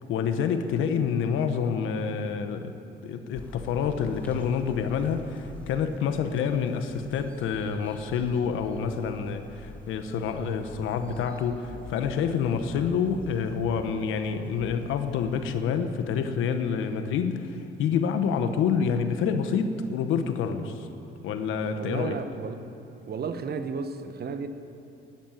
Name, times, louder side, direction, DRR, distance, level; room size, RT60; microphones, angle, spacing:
voice 1, 0.1-2.7 3.0-20.9 21.2-22.2, left 6 dB, 90° left, 8 dB, 1.1 m, -27 dB
sound 1, 3.3-15.6, left 2 dB, 5° left, 2.7 m, -47 dB
voice 2, 21.8-22.7 23.1-24.5, right 5 dB, 55° right, 9 dB, 1.2 m, -33 dB
13.5 x 11.0 x 9.4 m, 2.9 s
cardioid pair, 90°, 20 cm